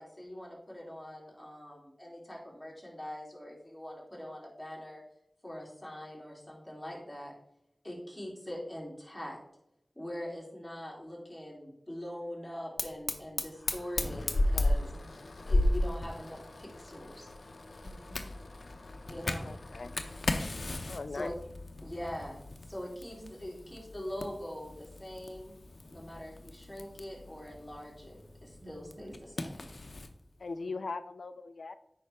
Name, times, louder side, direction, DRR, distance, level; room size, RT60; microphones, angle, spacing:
voice 1, 0.0-5.0 5.4-7.3 7.8-9.4 9.9-14.9 15.5-17.3 19.1-19.5 21.1-21.3 21.8-25.5 25.9-29.7, equal, 15° left, -3 dB, 3.1 m, -43 dB
Fire, 12.8-30.1, left 1 dB, 70° left, 0.7 m, -35 dB
voice 2, 14.8-15.2 17.8-18.3 18.7-19.1 21.1-21.2 23.2-23.3 25.8-26.0 28.6-29.1, right 2 dB, 75° right, 3 dB, 1.2 m, -54 dB
voice 3, 19.5-19.9 20.9-21.4 30.4-31.7, left 3 dB, 90° left, 12 dB, 0.4 m, -39 dB
8.6 x 5.5 x 3.5 m, 0.80 s
wide cardioid pair, 50°, 0 cm